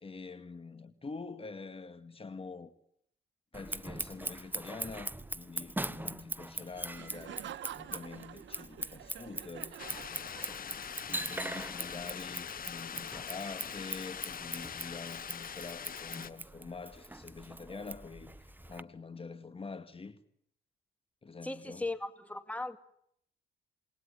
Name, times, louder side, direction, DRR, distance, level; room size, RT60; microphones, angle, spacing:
voice 1, 0.0-2.7 3.5-18.4 18.7-20.2 21.2-21.8, left 4 dB, 30° left, 2.1 m, -46 dB
Scissors, 3.5-18.8, right 1 dB, 10° right, 1.4 m, -42 dB
Laughter, 6.9-10.9, right 11 dB, 70° right, 1.7 m, -47 dB
sound 1, 9.8-16.3, left 7 dB, 45° left, 1.3 m, -42 dB
voice 2, 21.4-22.8, left 2 dB, 5° left, 2.3 m, -37 dB
28.5 x 21.0 x 9.9 m
cardioid pair, 90°, 20 cm